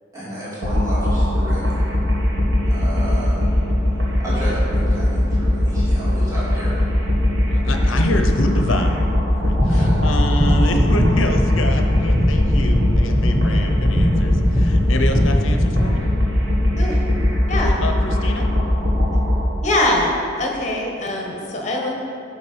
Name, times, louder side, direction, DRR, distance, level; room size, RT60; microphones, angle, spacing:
voice 1, 0.1-1.9 2.7-3.5 4.2-6.8 9.7-10.0, right 1 dB, 15° right, -10 dB, 2.3 m, -32 dB
sound 1, 0.6-19.4, left 1 dB, 70° right, 1.7 m, -20 dB
voice 2, 7.5-9.0 9.3-16.1 17.6-18.5, left 1 dB, 80° left, 5 dB, 0.8 m, -26 dB
sound 2, 9.4-15.9, equal, 10° left, 1.0 m, -20 dB
voice 3, 19.6-21.9, left 1 dB, 35° left, 0 dB, 1.3 m, -22 dB
11.0 x 5.8 x 4.6 m, 2.7 s
head